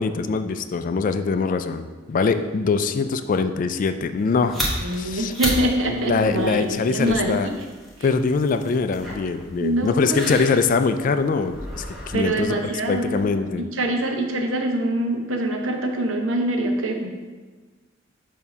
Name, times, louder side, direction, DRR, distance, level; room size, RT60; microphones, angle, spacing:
voice 1, 0.0-4.6 4.9-5.3 6.0-7.5 8.0-12.5 12.9-13.7, left 4 dB, 45° left, 9 dB, 0.3 m, -23 dB
sound 1, 4.2-13.3, equal, ahead, 1.1 m, -34 dB
voice 2, 4.5-7.6 8.0-8.1 9.6-10.3 12.1-17.1, right 1 dB, 85° right, 3 dB, 0.8 m, -25 dB
7.0 x 2.8 x 5.2 m, 1.4 s
head